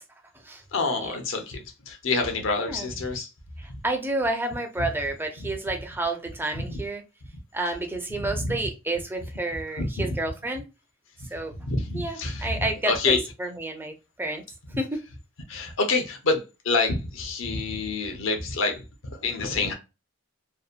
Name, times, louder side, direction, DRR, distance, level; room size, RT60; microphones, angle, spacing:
voice 1, 0.7-3.3 6.5-6.8 8.2-8.5 9.8-10.2 11.6-13.2 14.7-14.8 15.5-18.8 19.1-19.7, left 3 dB, 70° left, 0.6 m, -27 dB
voice 2, 3.8-7.0 7.5-10.6 11.3-11.5 11.9-14.4 14.8-15.0, right 2 dB, 10° right, 0.4 m, -30 dB
2.7 x 2.1 x 2.4 m
head